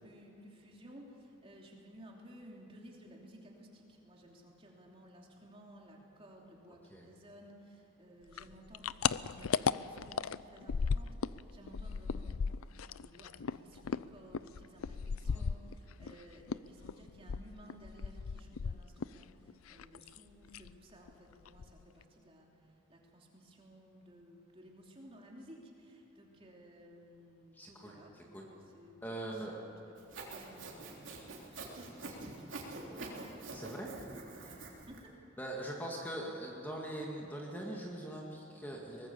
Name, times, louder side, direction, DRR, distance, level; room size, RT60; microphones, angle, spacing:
voice 1, 0.0-8.9 9.2-12.4 13.0-28.1 28.4-31.1 31.5-32.8 33.2-33.5 34.4-35.2, equal, 25° right, -1 dB, 3.1 m, -56 dB
sound 1, 8.3-11.4 11.7-16.1 16.5-19.2 19.5-20.2 20.5-20.7 21.1-21.2 21.5-22.0, left 6 dB, 90° left, 0.5 m, -36 dB
voice 2, 27.5-27.9 28.3-28.5 29.0-29.5 33.5-33.9 35.4-39.1, right 1 dB, 10° left, -2 dB, 2.1 m, -42 dB
Sawing, 30.0-35.0, right 2 dB, 60° right, 3.5 m, -46 dB
23.5 x 20.0 x 7.0 m, 2.8 s
head